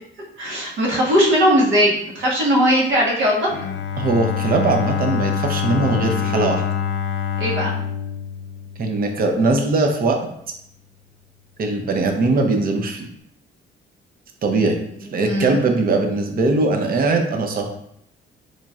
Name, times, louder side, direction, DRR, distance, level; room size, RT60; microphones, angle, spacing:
voice 1, 0.4-3.5 7.4-7.7 15.2-15.6, equal, 75° right, -3 dB, 1.2 m, -18 dB
Bowed string instrument, 3.5-9.4, left 7 dB, 70° left, 0.4 m, -25 dB
voice 2, 4.0-6.6 8.8-10.2 11.6-13.1 14.4-14.8 15.1-17.7, right 3 dB, 45° right, 4 dB, 0.6 m, -20 dB
3.9 x 3.1 x 2.3 m, 0.74 s
cardioid pair, 90°, 20 cm